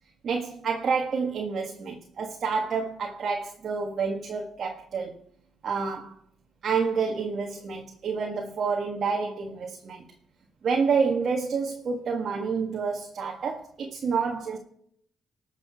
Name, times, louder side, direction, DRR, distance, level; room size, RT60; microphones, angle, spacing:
voice 1, 0.2-5.2 5.6-6.2 6.6-10.0 10.6-14.6, right 5 dB, 55° right, 1.8 m, -28 dB
19.5 x 7.0 x 4.6 m
cardioid pair, 90°, 0 cm